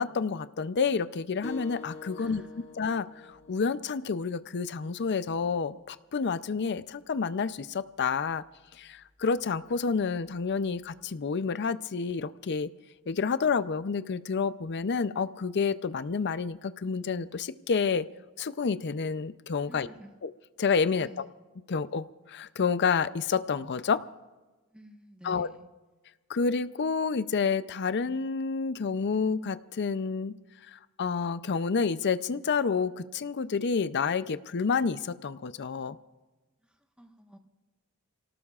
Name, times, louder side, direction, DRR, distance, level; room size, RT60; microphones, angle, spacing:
voice 1, 0.0-2.4 2.8-8.4 8.8-12.7 13.1-18.0 18.4-19.9 20.2-20.3 20.6-21.3 21.7-24.0 25.2-25.5 26.3-30.4 30.7-36.0, left 5 dB, 50° left, 14 dB, 0.5 m, -29 dB
sound 1, 1.4-6.6, left 2 dB, 30° left, 1.7 m, -48 dB
voice 2, 2.2-2.7 19.7-20.1 21.0-21.3 24.7-25.7 36.6-37.4, equal, 5° right, 3 dB, 1.3 m, -51 dB
28.5 x 18.0 x 2.4 m, 1.2 s
head